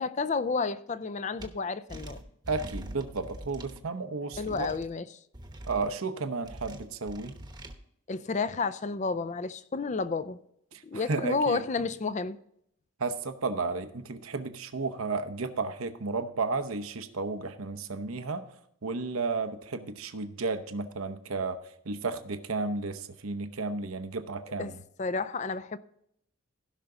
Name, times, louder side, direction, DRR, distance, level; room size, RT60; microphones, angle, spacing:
voice 1, 0.0-2.2 4.4-5.0 8.1-10.4 10.8-12.4 24.6-24.7 25.0-25.8, left 4 dB, 35° left, 0.4 m, -31 dB
sound 1, 1.4-1.5 1.9-3.8 4.3-4.9 5.3-5.9 6.4-7.7, right 1 dB, 20° right, 0.9 m, -43 dB
voice 2, 2.5-4.7 5.7-7.4 10.7-11.9 13.0-18.5 18.8-21.6 21.8-24.8, right 3 dB, 85° right, 0.8 m, -33 dB
16.0 x 5.9 x 3.8 m
head